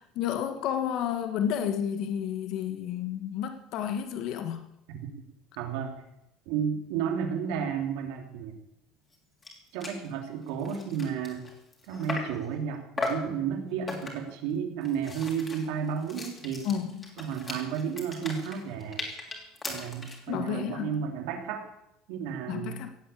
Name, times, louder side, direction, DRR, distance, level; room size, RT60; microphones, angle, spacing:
voice 1, 0.0-4.6 16.6-17.1 20.3-20.9 22.5-22.9, left 9 dB, 55° left, 7 dB, 1.5 m, -31 dB
voice 2, 5.6-6.0 6.5-8.5 9.7-11.5 11.9-16.7 17.2-19.0 19.7-21.6 22.1-22.8, right 7 dB, 80° right, 3 dB, 3.1 m, -32 dB
sound 1, 9.1-9.2 9.4-9.6 9.8-10.0 10.5-12.4 13.0-13.3 13.9-14.4 14.8-20.3, left 3 dB, 20° left, 3.3 m, -37 dB
17.0 x 8.3 x 8.5 m, 0.83 s
cardioid pair, 155°, 0 cm